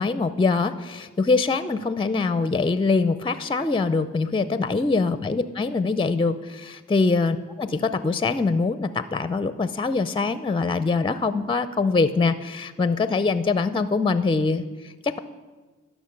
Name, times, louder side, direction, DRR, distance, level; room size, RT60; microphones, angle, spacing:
voice 1, 0.0-15.2, left 4 dB, 15° left, 12 dB, 0.5 m, -23 dB
11.5 x 6.1 x 5.2 m, 1.3 s
cardioid pair, 45°, 30 cm